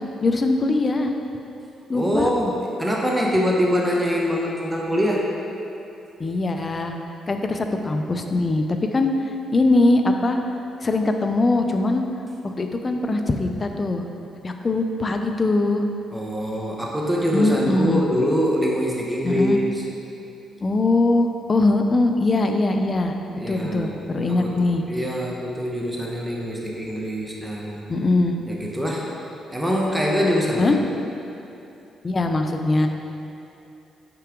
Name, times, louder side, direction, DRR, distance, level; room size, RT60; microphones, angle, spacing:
voice 1, 0.2-1.1 1.9-2.3 6.2-6.9 7.3-9.1 9.5-10.4 10.8-12.0 12.4-14.0 14.4-15.8 17.3-18.0 19.2-19.6 20.6-23.2 23.5-24.8 27.9-28.4 30.6-30.8 32.0-32.9, left 2 dB, 30° left, 5 dB, 0.5 m, -21 dB
voice 2, 1.9-5.3 16.1-19.8 23.3-27.8 28.5-29.2 29.5-30.7, equal, 10° right, -3 dB, 0.8 m, -24 dB
5.8 x 4.7 x 3.7 m, 2.8 s
cardioid pair, 90°, 0 cm